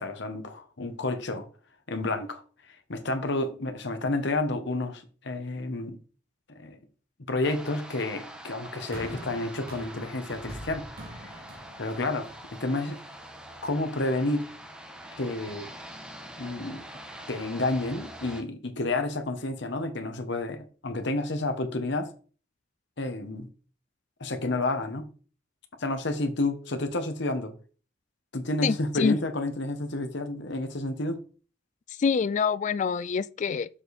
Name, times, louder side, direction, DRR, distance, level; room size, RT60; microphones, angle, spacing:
voice 1, 0.0-1.5 1.9-6.0 6.5-6.8 7.3-10.9 11.2-11.4 11.8-13.0 13.6-14.5 15.2-15.7 16.4-16.8 17.3-22.1 23.0-23.5 24.2-25.1 25.8-27.5 28.3-31.2, left 2 dB, 60° left, 1.1 m, -30 dB
sound 1, 7.4-18.4, right 1 dB, 5° right, 1.1 m, -44 dB
sound 2, 8.9-13.3 14.1-14.2, equal, 50° right, 2.5 m, -44 dB
voice 2, 28.6-29.2 32.0-33.7, left 5 dB, 40° left, 0.3 m, -26 dB
7.5 x 5.0 x 4.2 m
head